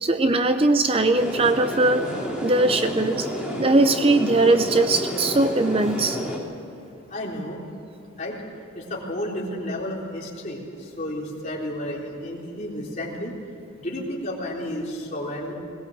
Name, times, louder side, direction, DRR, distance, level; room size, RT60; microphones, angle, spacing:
voice 1, 0.0-2.1 2.4-3.3 3.6-6.2, right 2 dB, 25° right, 9 dB, 0.6 m, -20 dB
sound 1, 1.1-6.4, equal, 5° right, 3.1 m, -30 dB
voice 2, 7.1-7.6 8.2-8.4 8.7-13.3 13.8-15.5, left 1 dB, 35° left, -3 dB, 3.7 m, -32 dB
21.0 x 18.0 x 7.9 m, 2.7 s
head